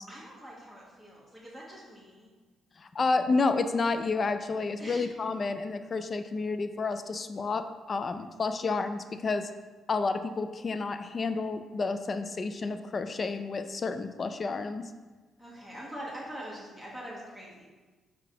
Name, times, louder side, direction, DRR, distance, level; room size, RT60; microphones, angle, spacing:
voice 1, 0.1-2.3 4.8-5.1 15.4-17.7, equal, 15° left, -5 dB, 1.2 m, -43 dB
voice 2, 2.8-9.5 9.9-14.9, left 4 dB, 40° left, 10 dB, 0.3 m, -30 dB
4.9 x 3.8 x 2.8 m, 1.3 s
cardioid pair, 90°, 0 cm